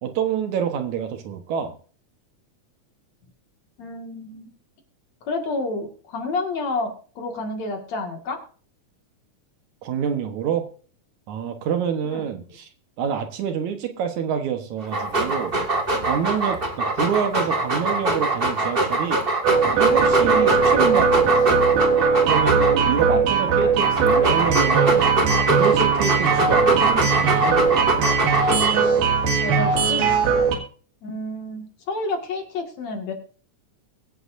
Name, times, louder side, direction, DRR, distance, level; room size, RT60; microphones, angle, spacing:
voice 1, 0.0-1.7 9.8-10.7 11.3-12.7 13.0-15.6 16.0-19.2 19.7-21.6 22.2-25.1 25.5-27.6, right 8 dB, 70° right, 6 dB, 2.5 m, -27 dB
voice 2, 3.8-4.5 5.2-6.9 7.2-8.4 12.1-12.2 29.4-30.1 31.0-33.1, left 3 dB, 60° left, 3 dB, 3.1 m, -29 dB
Dog, 14.8-23.0 23.6-29.0, right 2 dB, 25° right, 1.3 m, -23 dB
sound 1, 19.4-30.6, right 5 dB, 90° right, 3.7 m, -20 dB
23.5 x 8.4 x 2.6 m, 0.41 s
omnidirectional pair, 3.6 m